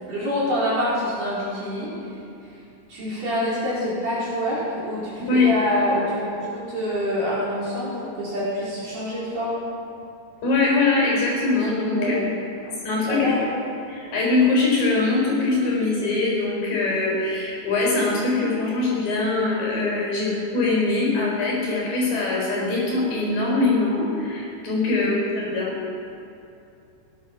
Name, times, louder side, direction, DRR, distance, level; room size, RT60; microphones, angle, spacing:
voice 1, 0.1-1.9 2.9-9.6 11.9-12.3 12.6-12.7 13.0-13.4 25.0-25.1, equal, 50° right, -9 dB, 5.5 m, -26 dB
voice 2, 5.2-5.5 10.4-12.2 12.9-13.3 13.9-25.7, left 3 dB, 55° left, -3 dB, 5.8 m, -22 dB
17.5 x 11.0 x 6.0 m, 2.6 s
omnidirectional pair, 5.0 m